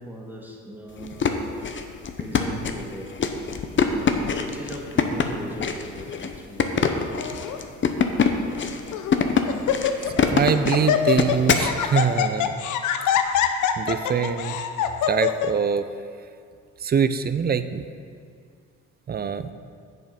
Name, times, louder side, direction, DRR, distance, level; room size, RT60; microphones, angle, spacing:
voice 1, 0.0-1.4 2.2-3.1 3.8-7.0, right 1 dB, 5° right, -2 dB, 1.7 m, -38 dB
sound 1, 1.0-11.7, left 6 dB, 40° left, 0.8 m, -24 dB
Laughter, 7.2-7.6 8.3-8.4 8.9-9.2 9.5-10.2 10.5-15.5, left 9 dB, 75° left, 0.7 m, -24 dB
voice 2, 10.3-12.5 13.8-14.6 15.1-15.8 16.8-17.8 19.1-19.5, right 7 dB, 30° right, 12 dB, 0.5 m, -23 dB
7.9 x 7.2 x 5.2 m, 2.2 s
cardioid pair, 90°, 30 cm